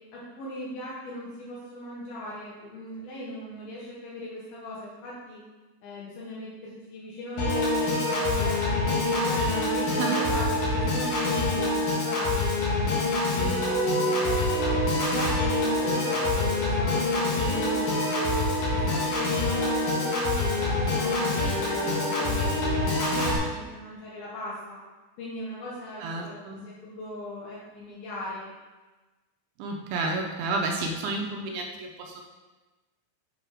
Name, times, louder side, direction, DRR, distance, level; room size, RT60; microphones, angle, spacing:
voice 1, 0.1-5.4 5.8-12.4 12.8-13.9 14.2-14.8 15.1-18.3 18.7-24.8 25.2-26.4 26.8-28.5, left 1 dB, 75° left, -6 dB, 2.7 m, -39 dB
Piano / Organ, 7.4-23.4, left 2 dB, 60° left, 2.9 m, -25 dB
voice 2, 26.0-26.6 29.6-32.2, right 3 dB, 80° right, 1 dB, 2.3 m, -31 dB
7.5 x 3.4 x 4.9 m, 1.2 s
omnidirectional pair, 4.5 m